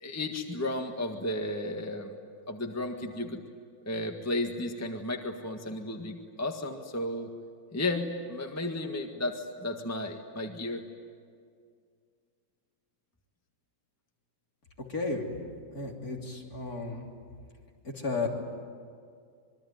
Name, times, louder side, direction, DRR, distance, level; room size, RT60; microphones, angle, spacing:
voice 1, 0.0-2.1 2.5-3.4 3.8-7.3 7.7-10.8, left 1 dB, 10° left, 3 dB, 1.5 m, -33 dB
voice 2, 14.9-15.3 15.7-17.0 17.8-18.3, left 3 dB, 50° left, 0 dB, 3.9 m, -33 dB
26.0 x 23.0 x 9.5 m, 2.1 s
omnidirectional pair, 2.0 m